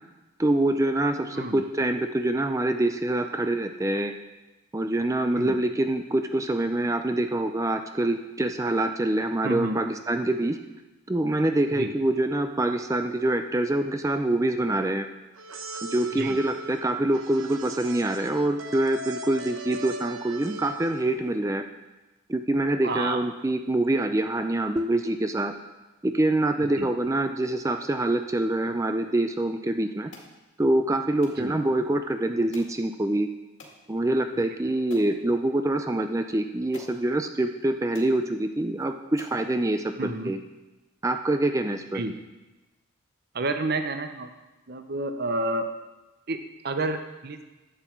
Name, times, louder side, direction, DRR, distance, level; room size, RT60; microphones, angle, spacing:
voice 1, 0.4-4.1 4.7-10.6 11.1-15.1 15.8-21.6 22.3-25.5 26.0-30.1 30.6-33.3 33.9-40.4 41.0-42.0, right 1 dB, 15° right, 7 dB, 0.4 m, -25 dB
voice 2, 9.4-9.8 11.8-11.9 16.2-16.4 22.8-23.2 26.8-26.9 31.4-31.5 40.0-40.3 41.9-42.1 43.3-44.3 44.7-45.6 46.3-46.4 46.6-47.5, right 2 dB, 50° right, 8 dB, 0.7 m, -29 dB
sound 1, 15.3-21.2, right 2 dB, 75° right, 1.0 m, -39 dB
sound 2, 30.1-30.3 31.2-31.4 32.5-32.8 33.6-33.8 34.4-34.5 34.9-35.2 36.2-36.3 36.7-37.0 37.6-37.7 37.9-38.2 38.8-38.9 39.2-39.4, left 2 dB, 70° left, 2.0 m, -47 dB
11.0 x 8.0 x 4.5 m, 1.1 s
head